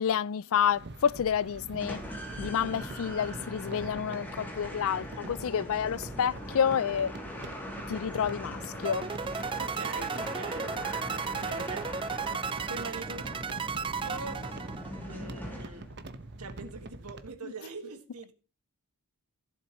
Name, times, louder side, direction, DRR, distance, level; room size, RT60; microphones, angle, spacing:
voice 1, 0.0-2.0 2.4-7.1 7.9-9.1, left 8 dB, 65° left, 0.4 m, -29 dB
sound 1, 0.6-17.3, right 2 dB, 50° right, 1.1 m, -45 dB
sound 2, 1.8-16.1, equal, 10° left, 2.6 m, -41 dB
sound 3, 8.8-15.1, right 5 dB, 25° right, 0.4 m, -35 dB
voice 2, 9.6-10.8 11.3-11.9 12.3-13.3 14.0-14.5 15.1-15.9 16.3-18.3, right 3 dB, 80° right, 1.7 m, -42 dB
15.5 x 7.6 x 3.0 m
head